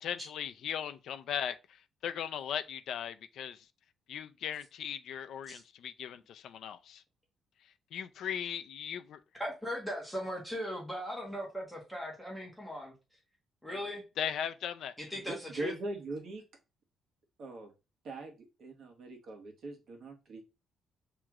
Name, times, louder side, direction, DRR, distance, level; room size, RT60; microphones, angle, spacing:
voice 1, 0.0-3.7 4.1-7.0 7.9-9.2 14.2-14.9, left 9 dB, 60° left, 0.4 m, -38 dB
voice 2, 9.4-12.9 13.6-14.0 15.0-15.7, equal, ahead, 1.2 m, -38 dB
voice 3, 15.1-16.4 17.4-17.7 18.0-20.4, right 2 dB, 50° right, 1.3 m, -41 dB
7.5 x 2.9 x 2.4 m
cardioid pair, 165°, 0 cm